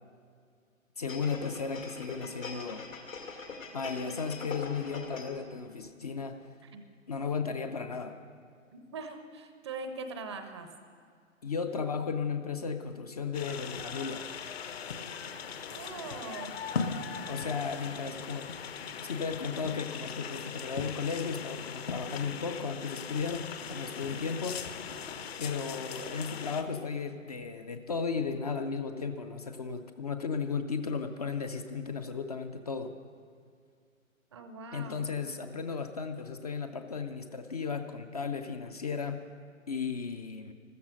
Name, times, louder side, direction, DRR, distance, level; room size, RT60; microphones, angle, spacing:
voice 1, 1.0-2.9 3.7-6.5 7.1-8.2 11.4-14.3 17.3-18.5 19.0-24.6 25.4-32.9 34.7-39.2 39.7-40.5, left 5 dB, 30° left, 8 dB, 0.5 m, -35 dB
sound 1, 1.1-5.5 5.9-6.0, left 4 dB, 70° left, 2.5 m, -43 dB
voice 2, 8.7-10.7 15.7-16.6 24.0-24.2 34.3-35.1, right 4 dB, 20° right, 8 dB, 0.6 m, -42 dB
sound 2, 13.3-26.6, left 6 dB, 45° left, 1.1 m, -39 dB
14.5 x 14.0 x 6.4 m, 2.2 s
figure-of-eight pair, 130°, 41 cm